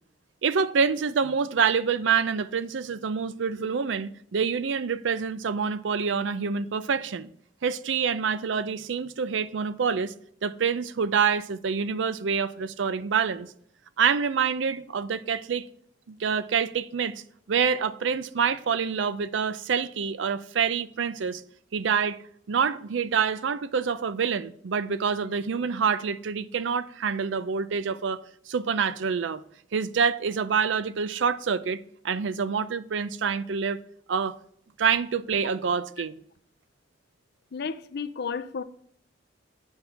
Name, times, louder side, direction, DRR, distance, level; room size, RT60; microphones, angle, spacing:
voice 1, 0.4-7.3 7.6-10.1 10.4-13.5 14.0-15.7 16.1-17.1 17.5-21.4 21.7-22.2 22.5-29.4 29.7-33.8 34.1-34.4 34.8-36.1, right 6 dB, 70° right, 0.5 m, -26 dB
voice 2, 37.5-38.6, left 5 dB, 60° left, 0.5 m, -32 dB
8.0 x 5.4 x 4.5 m
head